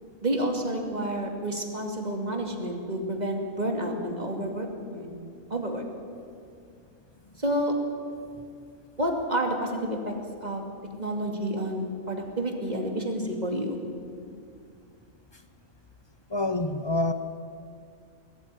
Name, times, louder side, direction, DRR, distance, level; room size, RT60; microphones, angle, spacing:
voice 1, 0.2-4.7 4.9-5.1 5.5-5.8 7.4-7.8 9.0-10.1 10.4-10.6 11.0-13.8, right 1 dB, 30° right, 2 dB, 2.6 m, -29 dB
voice 2, 16.3-17.1, left 2 dB, 25° left, 9 dB, 0.6 m, -26 dB
21.0 x 14.0 x 9.3 m, 2.3 s
omnidirectional pair, 1.6 m